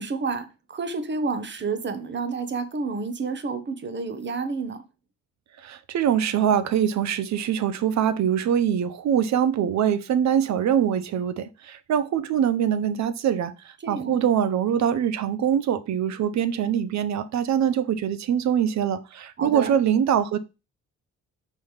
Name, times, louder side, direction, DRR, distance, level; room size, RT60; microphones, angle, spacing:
voice 1, 0.0-4.8 13.8-14.2 19.4-19.7, right 4 dB, 35° right, 1.1 m, -30 dB
voice 2, 5.6-20.4, right 9 dB, 65° right, 0.8 m, -23 dB
5.4 x 3.5 x 5.6 m
cardioid pair, 90°, 30 cm